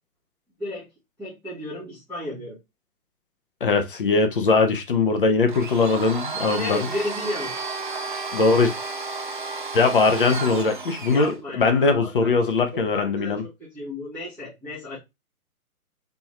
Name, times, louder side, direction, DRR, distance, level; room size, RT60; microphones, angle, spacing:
voice 1, 1.2-2.6 6.5-7.6 11.1-15.0, left 1 dB, 5° left, 1.3 m, -33 dB
voice 2, 3.6-6.8 8.3-8.7 9.7-13.4, left 4 dB, 40° left, 0.6 m, -21 dB
Domestic sounds home sounds, 5.5-11.4, right 4 dB, 35° right, 0.4 m, -32 dB
3.5 x 3.0 x 3.1 m
hypercardioid pair, 145°, 44 cm